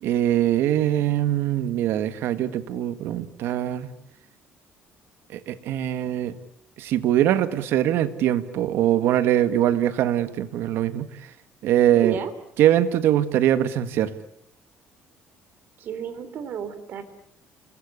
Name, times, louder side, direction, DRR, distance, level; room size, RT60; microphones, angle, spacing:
voice 1, 0.0-3.9 5.3-6.3 6.8-11.1 11.6-12.2 12.6-14.1, right 11 dB, 70° right, 12 dB, 1.8 m, -22 dB
voice 2, 11.9-12.3 15.8-17.0, right 8 dB, 50° right, 11 dB, 3.4 m, -32 dB
29.5 x 20.5 x 8.4 m, 0.69 s
cardioid pair, 155°, 4 cm